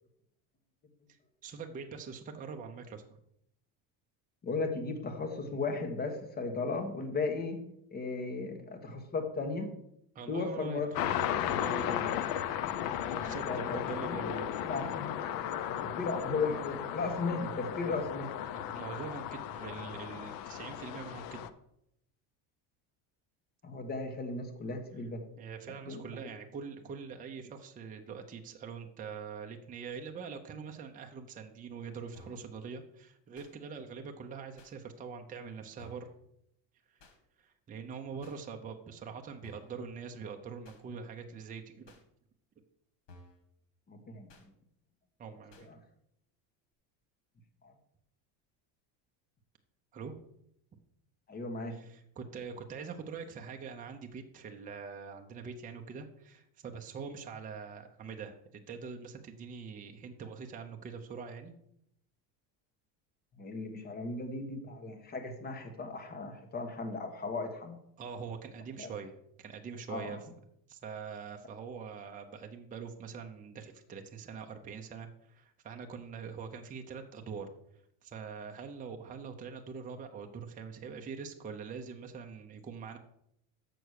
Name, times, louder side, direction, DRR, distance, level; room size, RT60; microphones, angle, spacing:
voice 1, 1.4-3.0 10.1-10.8 11.5-12.3 13.1-14.5 18.7-21.4 25.4-36.1 36.9-37.0 37.4-42.0 45.2-45.8 49.9-50.2 51.7-61.5 68.0-69.1 69.4-70.2 70.7-77.5 78.0-83.0, right 5 dB, 20° right, 4 dB, 0.6 m, -44 dB
voice 2, 4.4-7.6 7.9-9.7 10.2-11.1 13.1-13.8 14.1-14.3 14.6-15.2 15.8-18.3 23.6-25.2 25.9-26.3 43.9-44.5 45.3-45.8 47.6-47.7 51.3-51.8 63.3-67.8 68.8-68.9 69.9-70.2, left 3 dB, 20° left, 4 dB, 1.2 m, -36 dB
sound 1, 10.9-21.5, left 10 dB, 55° left, 0.6 m, -35 dB
sound 2, 32.1-32.5 33.3-33.5 34.6-34.7 35.8-36.1 37.0-37.2 38.2-38.4 39.4-39.8 40.6-40.8 41.9-42.0 43.1-43.4 44.3-44.5 45.5-45.7, left 2 dB, 80° left, 2.1 m, -55 dB
6.9 x 6.1 x 6.4 m, 0.75 s
cardioid pair, 155°, 43 cm